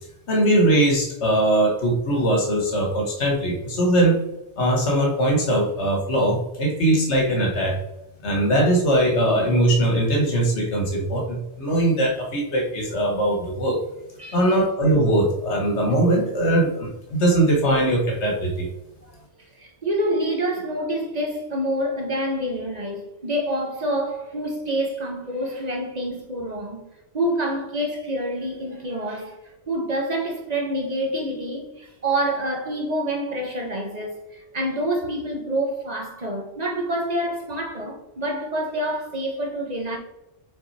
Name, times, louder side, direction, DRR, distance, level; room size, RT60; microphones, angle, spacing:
voice 1, 0.3-4.2 4.6-7.8 8.2-13.8 14.3-18.7, right 1 dB, 65° left, 1.6 m, -21 dB
voice 2, 19.6-26.8 27.1-29.4 29.7-40.0, right 1 dB, 35° right, 1.2 m, -27 dB
6.3 x 4.2 x 4.2 m
omnidirectional pair, 1.3 m